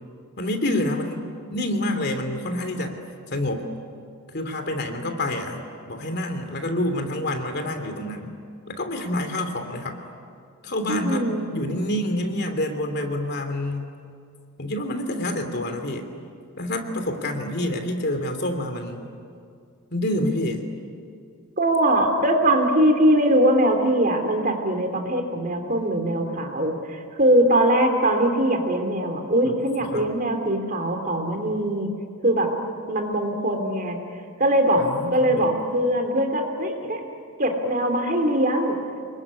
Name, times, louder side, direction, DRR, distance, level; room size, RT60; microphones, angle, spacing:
voice 1, 0.4-1.2 1.5-3.0 3.3-3.7 4.3-5.6 5.9-8.3 8.7-10.0 10.6-13.9 14.6-16.1 16.6-19.0 19.9-20.6 29.9-30.1 34.8-35.6, left 1 dB, 50° left, 6 dB, 3.0 m, -27 dB
voice 2, 10.9-11.5 21.6-31.9 32.2-32.5 32.9-34.0 34.4-34.8 35.1-37.0 37.4-38.7, right 1 dB, 40° right, 4 dB, 3.2 m, -21 dB
27.0 x 22.5 x 9.8 m, 2.3 s
head